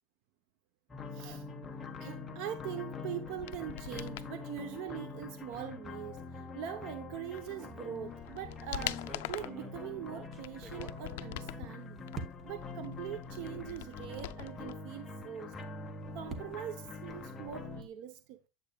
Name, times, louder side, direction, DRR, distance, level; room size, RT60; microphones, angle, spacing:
sound 1, 0.9-17.8, left 4 dB, 15° left, 0.9 m, -44 dB
voice 1, 1.1-1.5 2.0-12.0 12.4-15.8 16.1-18.4, right 10 dB, 55° right, 0.8 m, -42 dB
sound 2, 3.3-4.3 7.4-7.5 8.0-9.6 10.2-11.7 12.1-14.8 15.0-15.1, left 15 dB, 85° left, 0.3 m, -43 dB
sound 3, 8.1-8.4 8.9-11.7 12.1-12.7 13.4-13.5 13.9-14.0 15.6-17.9, right 4 dB, 20° right, 1.1 m, -48 dB
8.9 x 7.9 x 2.3 m
cardioid pair, 165°, 0 cm